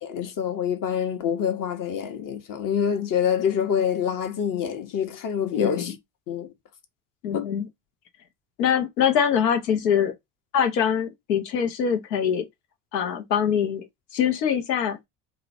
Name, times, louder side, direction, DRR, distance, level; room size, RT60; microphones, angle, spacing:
voice 1, 0.0-5.9 6.3-6.5 7.3-7.5, left 8 dB, 45° left, 0.9 m, -26 dB
voice 2, 5.6-5.9 7.2-7.7 8.6-10.1 10.5-12.5 12.9-13.9 14.1-15.0, left 8 dB, 85° left, 0.7 m, -23 dB
2.8 x 2.1 x 2.6 m
hypercardioid pair, 65°, 48 cm